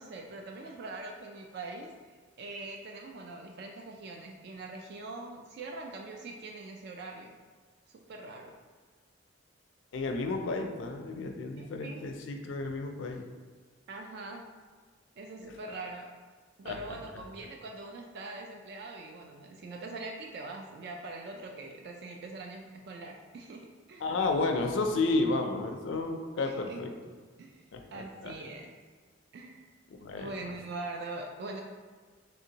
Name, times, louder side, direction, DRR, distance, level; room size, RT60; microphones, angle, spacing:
voice 1, 0.0-7.3 7.9-8.5 11.6-12.0 13.9-14.4 15.2-16.2 16.6-24.1 26.4-26.8 27.4-27.6 27.9-28.7 29.3-29.6 30.2-31.6, right 2 dB, 60° right, 1 dB, 0.3 m, -43 dB
voice 2, 9.9-13.3 15.4-15.5 16.6-16.8 24.0-26.9 27.7-28.3 29.9-30.3, left 3 dB, 75° left, 4 dB, 0.4 m, -32 dB
3.3 x 2.7 x 2.8 m, 1.5 s
head